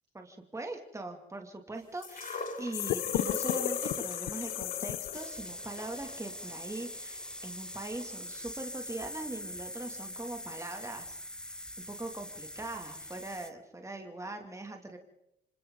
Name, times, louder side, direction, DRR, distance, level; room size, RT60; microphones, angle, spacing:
voice 1, 0.1-11.2 11.9-15.0, right 2 dB, 15° right, 4 dB, 2.6 m, -41 dB
sound 1, 2.0-8.1 8.9-9.0, left 3 dB, 45° left, 6.4 m, -41 dB
sound 2, 2.7-5.5, left 15 dB, 90° left, 0.8 m, -34 dB
sound 3, 5.1-13.5, left 1 dB, 5° left, 0.9 m, -43 dB
29.0 x 25.5 x 4.0 m, 0.81 s
cardioid pair, 90°, 20 cm